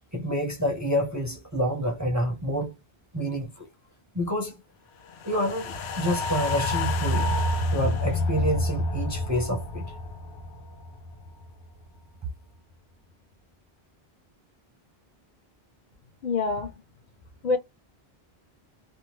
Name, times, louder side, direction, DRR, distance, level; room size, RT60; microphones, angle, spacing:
voice 1, 0.1-2.7 3.1-3.7 4.1-4.6 5.2-7.4 7.7-9.9, equal, 20° right, 0.6 m, -28 dB
sound 1, 5.2-11.6 12.0-12.1, left 1 dB, 90° left, 0.9 m, -28 dB
voice 2, 16.2-16.7 17.4-17.6, left 4 dB, 50° left, 0.7 m, -25 dB
2.7 x 2.1 x 2.9 m
omnidirectional pair, 1.1 m